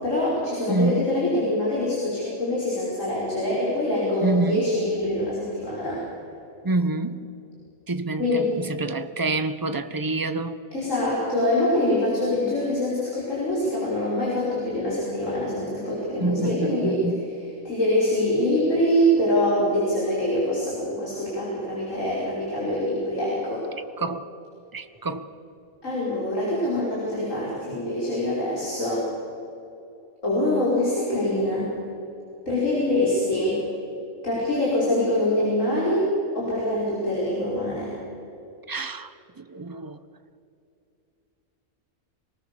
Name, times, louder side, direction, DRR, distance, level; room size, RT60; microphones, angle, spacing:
voice 1, 0.0-6.0 8.2-8.6 10.7-17.0 17.6-23.7 25.8-29.1 30.2-31.7 32.5-33.6 34.2-37.9, left 1 dB, 60° left, 5.7 m, -24 dB
voice 2, 0.7-1.2 4.2-4.7 6.6-7.3 7.9-10.6 16.2-17.2 24.0-24.3 24.7-25.3 38.7-40.0, right 2 dB, 20° right, 0.6 m, -27 dB
26.5 x 19.5 x 6.9 m
omnidirectional pair, 1.5 m